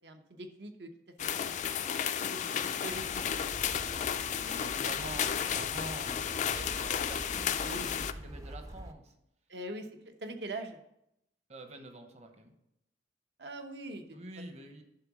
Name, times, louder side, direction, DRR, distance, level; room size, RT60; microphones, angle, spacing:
voice 1, 0.0-0.9 1.2-1.7 2.2-2.5 2.8-3.4 7.6-7.9 9.5-10.8 13.4-14.0 14.4-14.6, right 1 dB, 70° right, 6 dB, 0.9 m, -43 dB
sound 1, 1.2-8.1, left 8 dB, 40° left, 0.3 m, -33 dB
voice 2, 1.8-2.9 3.7-4.1 4.5-9.1 11.5-12.5 14.1-14.8, right 2 dB, 40° right, 5 dB, 1.0 m, -47 dB
sound 2, 2.9-8.9, right 1 dB, 20° right, 0.5 m, -46 dB
11.0 x 3.8 x 6.2 m, 0.80 s
head